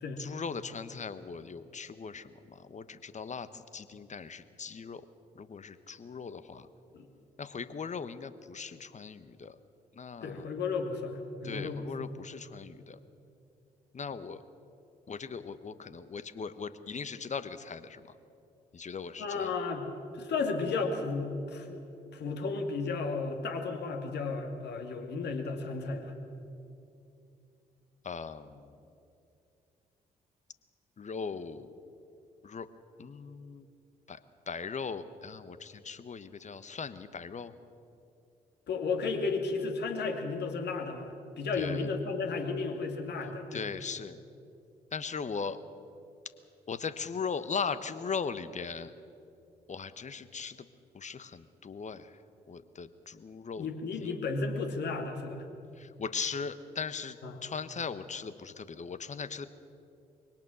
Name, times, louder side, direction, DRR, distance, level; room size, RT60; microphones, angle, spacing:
voice 1, 0.2-5.0 5.4-6.7 7.4-9.6 10.0-10.5 11.4-13.0 13.9-14.4 15.1-18.0 18.7-19.5 28.0-28.6 31.0-31.7 32.4-32.7 33.0-33.7 34.1-34.2 34.5-37.5 41.6-41.8 43.5-44.2 44.9-45.6 46.7-48.9 49.7-50.6 50.9-52.1 52.5-53.7 54.0-54.1 55.8-57.2 57.4-59.5, left 5 dB, 35° left, 13 dB, 1.1 m, -39 dB
voice 2, 10.2-12.1 19.2-19.9 20.1-21.8 22.1-26.1 38.7-43.8 53.6-55.4 57.2-57.4, left 4 dB, 55° left, 4 dB, 2.4 m, -33 dB
23.0 x 18.0 x 6.4 m, 2.6 s
figure-of-eight pair, 40°, 20 cm